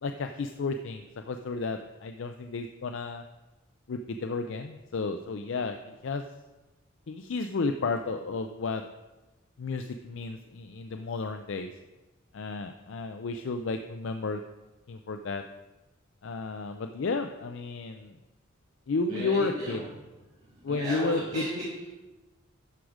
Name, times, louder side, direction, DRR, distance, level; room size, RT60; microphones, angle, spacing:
voice 1, 0.0-3.2 3.9-6.2 7.1-8.8 9.6-11.7 12.3-14.4 14.9-15.4 16.2-18.2 18.9-19.8 20.6-21.4, left 3 dB, 60° left, 6 dB, 0.4 m, -32 dB
voice 2, 19.1-19.9 20.6-21.9, right 1 dB, 30° right, -7 dB, 1.9 m, -35 dB
12.5 x 4.9 x 4.9 m, 1.1 s
head